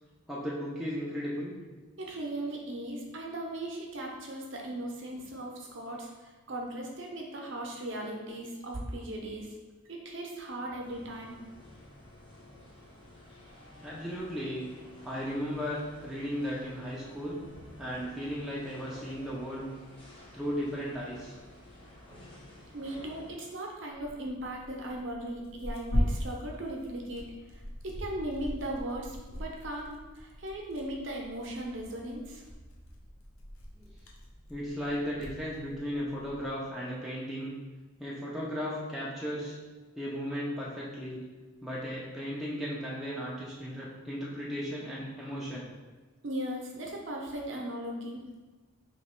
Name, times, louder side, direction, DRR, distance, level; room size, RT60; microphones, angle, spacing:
voice 1, 0.3-1.6 13.8-14.7 15.0-17.4 17.8-19.7 20.3-21.4 33.8-33.9 34.5-37.6 38.0-39.6 39.9-41.2 41.6-45.7, equal, ahead, -6 dB, 0.4 m, -35 dB
voice 2, 2.0-9.5 9.9-11.4 22.7-32.4 46.2-48.4, right 1 dB, 55° right, -1 dB, 0.7 m, -38 dB
sound 1, 10.8-23.3, left 1 dB, 25° left, 0.8 m, -52 dB
Tearing, 23.9-36.5, equal, 80° left, 0.7 m, -39 dB
3.0 x 2.9 x 4.3 m, 1.3 s
head